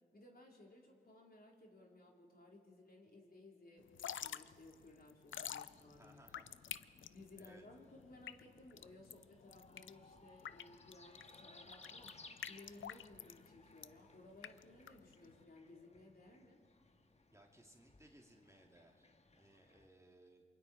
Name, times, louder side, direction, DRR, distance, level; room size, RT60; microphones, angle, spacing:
voice 1, 0.1-6.4 7.1-12.2 12.5-16.6, left 2 dB, 50° left, -1 dB, 3.6 m, -59 dB
Drip / Trickle dribble, 3.8-15.4, left 9 dB, 70° left, 0.5 m, -50 dB
sound 1, 5.3-19.9, left 3 dB, 30° left, 1.4 m, -63 dB
voice 2, 6.0-6.6 7.0-7.1 7.4-7.6 17.3-20.4, right 1 dB, 15° right, 1 dB, 2.8 m, -64 dB
27.5 x 23.0 x 4.3 m, 2.2 s
cardioid pair, 50°, 20 cm